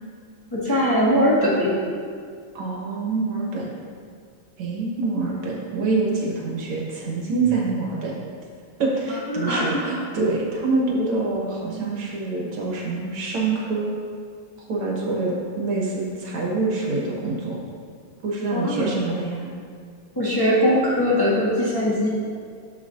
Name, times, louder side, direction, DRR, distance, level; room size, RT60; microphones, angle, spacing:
voice 1, 0.5-1.7 9.3-10.0 18.5-18.9 20.1-22.1, equal, 10° left, -9 dB, 1.6 m, -21 dB
voice 2, 2.5-3.7 4.6-8.2 8.8-13.9 14.7-17.6 18.2-19.5, right 3 dB, 70° right, -3 dB, 2.1 m, -25 dB
12.0 x 6.9 x 2.6 m, 2.1 s
omnidirectional pair, 2.4 m